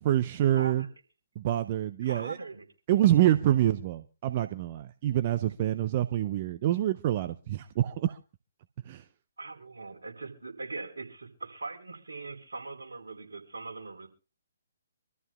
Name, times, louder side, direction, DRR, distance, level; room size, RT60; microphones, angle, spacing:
voice 1, 0.0-0.8 1.4-2.4 2.9-8.2 8.8-9.0, right 12 dB, 35° right, 0.6 m, -26 dB
voice 2, 0.6-0.9 2.0-2.7 9.4-14.1, right 3 dB, 70° right, 4.6 m, -41 dB
26.0 x 13.5 x 2.4 m
figure-of-eight pair, 135°, 0 cm